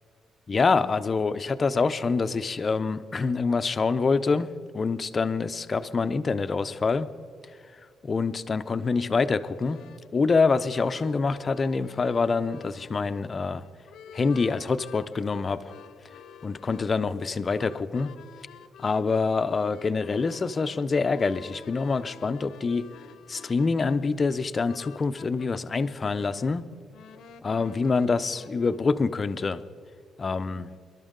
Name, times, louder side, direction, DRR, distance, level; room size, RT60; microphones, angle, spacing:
voice 1, 0.5-4.5 4.7-7.1 8.0-9.8 10.1-13.6 14.1-15.7 16.4-18.1 18.8-22.9 23.3-26.7 27.4-29.6 30.2-30.7, left 4 dB, 30° left, 12 dB, 0.5 m, -26 dB
sound 1, 9.5-25.5 25.8-28.8, left 7 dB, 70° left, 0.6 m, -50 dB
24.0 x 12.0 x 3.7 m, 2.1 s
cardioid pair, 155°, 0 cm